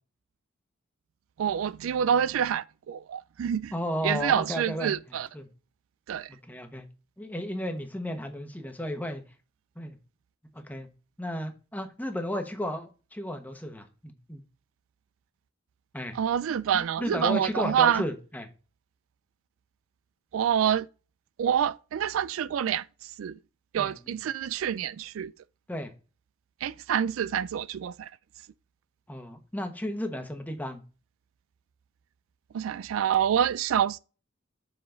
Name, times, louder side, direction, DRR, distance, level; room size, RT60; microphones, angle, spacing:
voice 1, 1.4-3.7 4.0-5.3 6.1-6.3 16.1-18.0 20.3-20.9 21.4-23.4 23.7-25.3 26.6-28.1 32.5-34.0, right 9 dB, 85° right, 0.3 m, -27 dB
voice 2, 3.7-5.0 5.3-5.5 6.3-6.8 7.2-9.2 9.8-10.0 10.5-10.9 11.2-14.4 15.9-16.2 16.7-18.5 23.7-23.9 25.7-25.9 29.1-30.8, equal, 10° left, 1.1 m, -34 dB
7.0 x 5.0 x 3.8 m
head